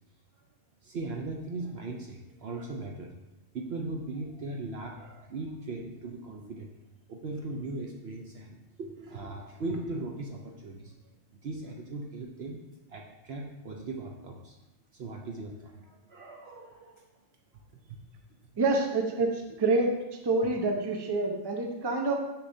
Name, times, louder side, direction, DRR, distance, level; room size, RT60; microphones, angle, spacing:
voice 1, 0.8-3.1 3.5-6.7 7.1-10.9 11.3-12.6 12.9-14.6 14.9-17.1 17.5-18.0, right 2 dB, 60° right, 1 dB, 0.8 m, -39 dB
voice 2, 18.6-19.9 20.2-22.2, right 3 dB, 25° right, 1 dB, 0.6 m, -27 dB
6.7 x 6.2 x 2.6 m, 0.98 s
omnidirectional pair, 1.4 m